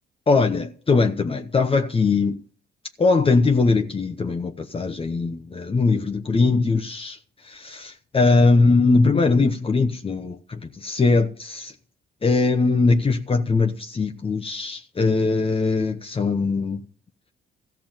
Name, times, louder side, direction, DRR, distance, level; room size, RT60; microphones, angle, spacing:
voice 1, 0.3-2.4 3.0-7.2 7.4-11.7 12.2-16.8, left 3 dB, 30° left, 0.9 m, -21 dB
14.0 x 5.9 x 9.0 m
cardioid pair, 90°, 20 cm